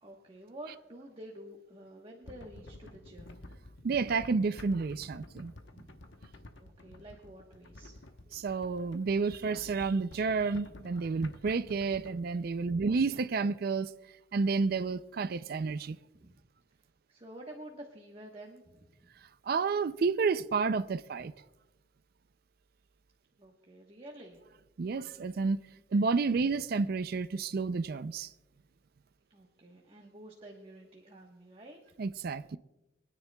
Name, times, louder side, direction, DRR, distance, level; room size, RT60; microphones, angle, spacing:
voice 1, 0.0-3.4 5.7-5.9 6.6-8.0 16.1-16.4 16.8-18.9 23.4-24.4 29.3-31.9, right 1 dB, 30° right, 1.2 m, -50 dB
sound 1, 2.2-12.3, left 1 dB, 85° left, 1.0 m, -51 dB
voice 2, 3.8-5.5 8.3-13.9 14.3-16.0 19.5-21.3 24.8-25.6 25.9-28.3 32.0-32.6, right 4 dB, 55° right, 0.4 m, -30 dB
25.0 x 9.8 x 2.3 m
head